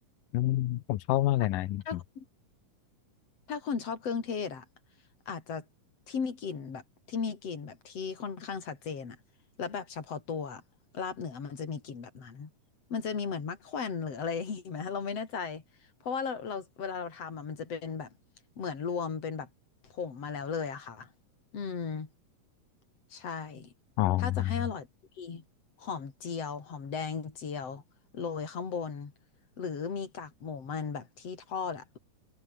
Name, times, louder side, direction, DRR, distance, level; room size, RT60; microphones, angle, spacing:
voice 1, 0.3-2.0 24.0-24.5, left 15 dB, 90° left, 2.7 m, -28 dB
voice 2, 1.9-2.2 3.5-4.6 5.3-5.6 6.1-6.8 7.1-9.2 9.6-10.6 10.9-12.5 12.9-15.6 16.0-18.1 18.6-19.5 19.8-21.1 21.5-22.1 23.1-23.7 24.2-24.9 25.2-25.4 25.8-27.8 28.1-29.1 29.6-32.0, left 5 dB, 50° left, 4.6 m, -36 dB
omnidirectional pair, 3.8 m